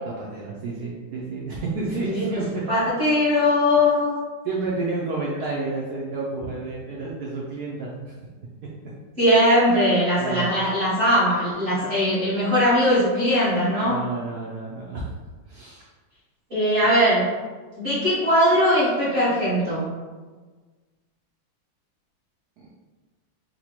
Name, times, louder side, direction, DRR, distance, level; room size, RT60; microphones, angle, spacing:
voice 1, 0.2-2.9 4.4-8.1 10.2-10.6 11.7-11.8 13.8-15.1 15.5-15.9, right 3 dB, 75° right, -4 dB, 0.9 m, -30 dB
voice 2, 2.7-4.1 9.2-13.9 16.5-17.3 17.8-19.9, equal, 35° right, -11 dB, 1.0 m, -20 dB
4.1 x 2.2 x 2.9 m, 1.3 s
omnidirectional pair, 2.2 m